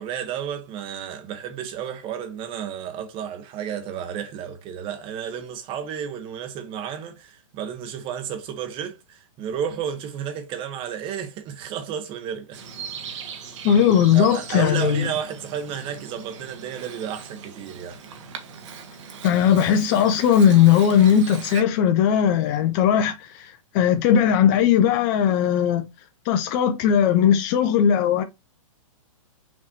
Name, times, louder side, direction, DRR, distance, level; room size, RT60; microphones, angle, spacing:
voice 1, 0.0-12.6 13.1-13.3 14.1-18.0, right 8 dB, 30° right, 1.1 m, -32 dB
Bird vocalization bird call bird song, 12.5-21.6, right 6 dB, 60° right, 1.3 m, -39 dB
voice 2, 13.6-15.1 19.2-25.9 26.3-28.2, left 9 dB, 35° left, 0.6 m, -18 dB
6.1 x 3.2 x 2.6 m
hypercardioid pair, 125°, 18 cm